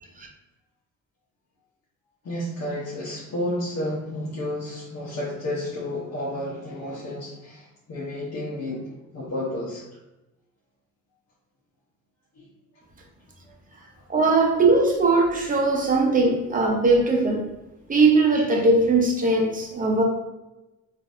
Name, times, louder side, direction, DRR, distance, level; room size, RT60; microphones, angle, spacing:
voice 1, 2.2-9.9 12.4-12.5 13.5-13.6, left 1 dB, 60° left, -7 dB, 1.0 m, -31 dB
voice 2, 14.1-17.5 17.9-20.0, right 3 dB, 25° right, 1 dB, 0.8 m, -20 dB
3.9 x 2.6 x 2.5 m, 1.0 s
cardioid pair, 90°, 30 cm